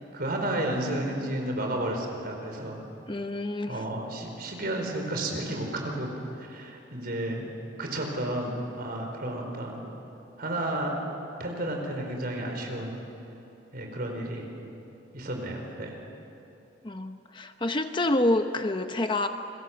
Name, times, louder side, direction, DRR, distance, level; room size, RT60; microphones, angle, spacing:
voice 1, 0.1-2.8 3.7-7.5 7.8-9.8 10.4-10.9 11.4-13.0 13.7-14.5 15.1-15.9, right 1 dB, 50° right, 2 dB, 4.7 m, -32 dB
voice 2, 3.1-3.8 16.8-19.3, left 1 dB, 25° left, 7 dB, 0.8 m, -27 dB
29.5 x 21.5 x 7.9 m, 2.8 s
head